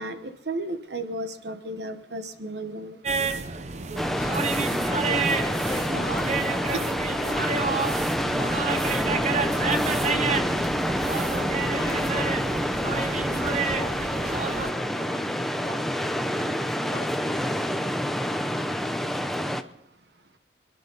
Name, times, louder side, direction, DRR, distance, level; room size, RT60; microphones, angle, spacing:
voice 1, 0.0-3.0, right 1 dB, 70° right, 8 dB, 1.1 m, -34 dB
sound 1, 3.0-14.7, right 4 dB, 40° right, 0.7 m, -29 dB
sound 2, 4.0-19.6, equal, ahead, 0.6 m, -27 dB
voice 2, 4.1-6.9 7.2-7.4 7.7-9.0 9.3-11.1 11.8-12.3 12.9-17.8, equal, 20° left, -1 dB, 2.8 m, -40 dB
26.5 x 10.5 x 4.0 m, 0.88 s
head